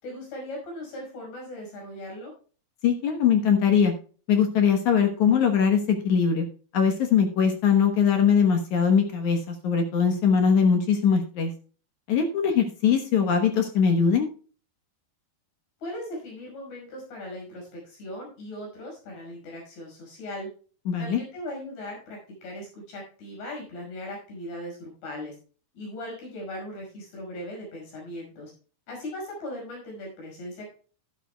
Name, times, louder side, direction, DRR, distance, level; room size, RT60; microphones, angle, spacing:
voice 1, 0.0-2.3 15.8-20.5 21.0-25.4 25.7-28.5 28.9-30.7, left 1 dB, 85° left, 0 dB, 7.6 m, -38 dB
voice 2, 2.8-3.9 4.3-6.5 6.7-11.5 12.1-14.3 20.9-21.2, left 7 dB, 65° left, 5 dB, 2.1 m, -21 dB
12.5 x 11.5 x 2.3 m, 0.38 s
omnidirectional pair, 4.6 m